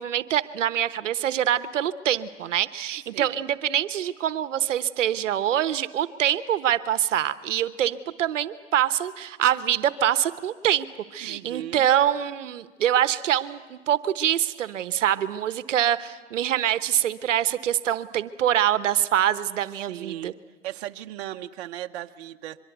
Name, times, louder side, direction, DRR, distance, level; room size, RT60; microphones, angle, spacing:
voice 1, 0.0-10.9 11.1-20.3, right 11 dB, 80° right, 13 dB, 1.1 m, -25 dB
voice 2, 2.9-3.3 11.2-11.9 19.9-20.3 20.6-22.6, right 13 dB, 60° right, 5 dB, 1.0 m, -37 dB
24.5 x 23.5 x 8.0 m, 1.4 s
hypercardioid pair, 135°, 37 cm